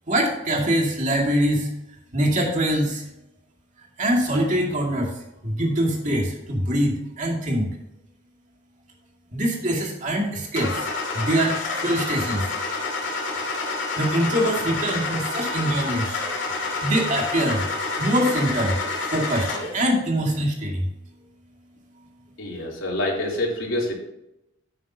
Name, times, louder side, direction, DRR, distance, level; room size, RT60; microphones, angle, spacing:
voice 1, 0.1-1.7 2.1-3.0 4.0-5.1 5.4-7.7 9.3-10.9 11.1-12.5 14.0-16.2 16.8-17.6 18.0-18.8 19.1-20.9, right 1 dB, 40° right, 0 dB, 2.3 m, -23 dB
Car / Engine starting, 10.5-19.8, left 3 dB, 65° left, 2.6 m, -28 dB
voice 2, 22.4-23.9, left 1 dB, 85° left, -3 dB, 3.3 m, -26 dB
11.0 x 9.0 x 2.8 m, 0.87 s
head